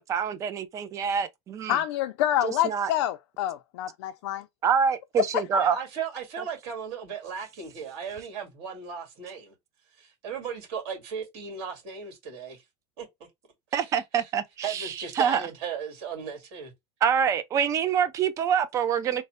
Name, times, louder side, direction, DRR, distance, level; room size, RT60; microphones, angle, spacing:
voice 1, 0.0-1.8 2.4-2.9 4.6-5.8 6.4-6.5 13.7-15.4 17.0-19.2, right 7 dB, 20° right, 0.4 m, -26 dB
voice 2, 1.7-4.5 5.3-5.4, left 12 dB, 70° left, 0.4 m, -27 dB
voice 3, 5.5-9.6 10.0-12.6 13.0-13.1 13.7-14.3 14.6-16.7, right 7 dB, 55° right, 1.8 m, -36 dB
3.2 x 2.1 x 4.1 m
supercardioid pair, 165°, 15 cm